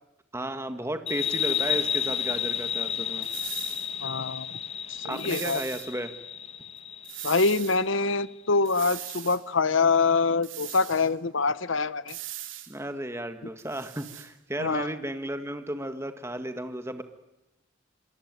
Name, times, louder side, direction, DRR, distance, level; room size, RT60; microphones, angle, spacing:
voice 1, 0.3-3.3 5.0-6.1 12.7-17.0, right 1 dB, 15° right, 8 dB, 1.7 m, -34 dB
sound 1, 1.1-8.3, left 8 dB, 30° left, 1.3 m, -32 dB
sound 2, 3.2-3.9 5.1-5.9 7.0-7.8 8.6-9.4 10.4-11.1 12.1-12.7 13.6-14.3, right 14 dB, 75° right, 2.5 m, -40 dB
voice 2, 4.0-4.6 4.9-5.6 7.2-12.2 14.6-14.9, left 4 dB, 75° left, 17 dB, 1.0 m, -25 dB
27.0 x 23.0 x 9.6 m, 0.92 s
head